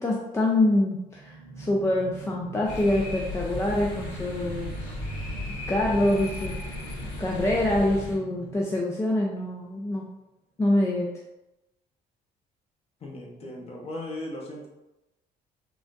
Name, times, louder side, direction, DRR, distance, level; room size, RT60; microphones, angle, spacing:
voice 1, 0.0-5.3 5.7-6.5 7.2-10.0 10.6-11.1, left 1 dB, 15° left, -2 dB, 0.4 m, -25 dB
sound 1, 1.0-9.4, right 3 dB, 70° right, 0.7 m, -43 dB
sound 2, 2.7-8.1, left 2 dB, 75° left, 1.5 m, -35 dB
voice 2, 13.0-14.7, left 1 dB, 35° left, -2 dB, 0.9 m, -37 dB
3.7 x 2.3 x 2.5 m, 0.94 s
cardioid pair, 110°, 17 cm